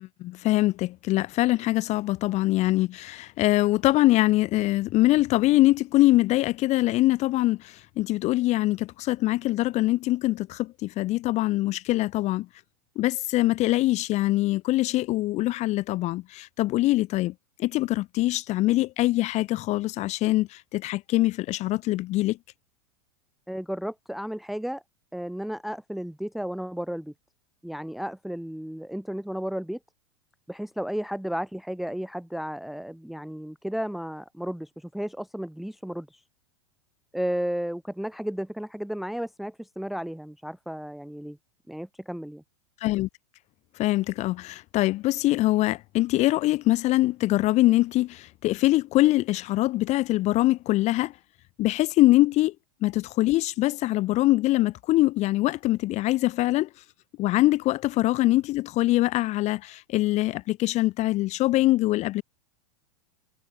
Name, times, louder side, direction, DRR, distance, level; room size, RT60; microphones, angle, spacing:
voice 1, 0.0-12.5 13.0-17.3 17.6-22.4 42.8-43.1 43.8-51.1 51.6-52.5 52.8-56.7 57.2-62.2, left 17 dB, 35° left, 0.7 m, -23 dB
voice 2, 23.5-24.8 25.1-27.1 27.6-29.8 30.5-36.2 37.1-41.4 41.7-42.4, equal, ahead, 0.8 m, -33 dB
hypercardioid pair, 95°, 19 cm